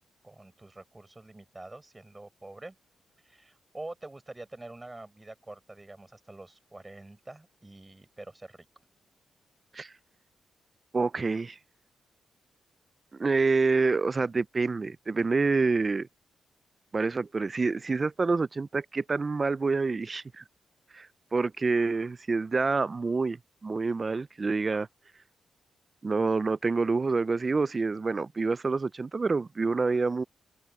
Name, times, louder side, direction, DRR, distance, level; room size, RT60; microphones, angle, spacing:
voice 1, 0.2-2.8 3.2-8.7, right 2 dB, 20° right, 7.0 m, -46 dB
voice 2, 10.9-11.6 13.2-16.1 16.9-20.4 20.9-21.1 21.3-24.9 26.0-30.2, right 4 dB, 40° right, 0.5 m, -27 dB
cardioid pair, 60°, 0 cm